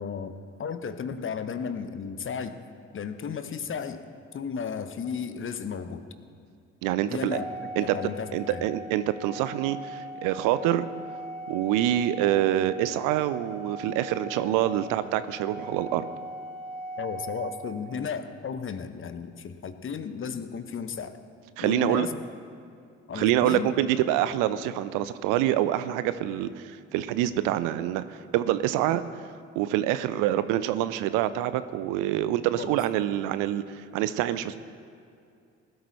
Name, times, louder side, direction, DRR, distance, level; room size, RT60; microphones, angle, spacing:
voice 1, 0.0-2.6 2.9-4.0 4.3-6.1 7.0-8.6 17.0-21.2 21.6-22.2 23.1-23.7 32.6-32.7, left 6 dB, 35° left, 10 dB, 0.9 m, -34 dB
voice 2, 6.8-7.4 7.8-7.9 8.3-10.8 11.5-16.1 21.6-22.1 23.1-29.0 29.6-34.6, right 13 dB, 60° right, 14 dB, 0.6 m, -26 dB
Organ, 7.3-18.1, right 1 dB, 15° right, 2.5 m, -40 dB
20.0 x 12.5 x 3.2 m, 2.4 s
figure-of-eight pair, 45°, 37 cm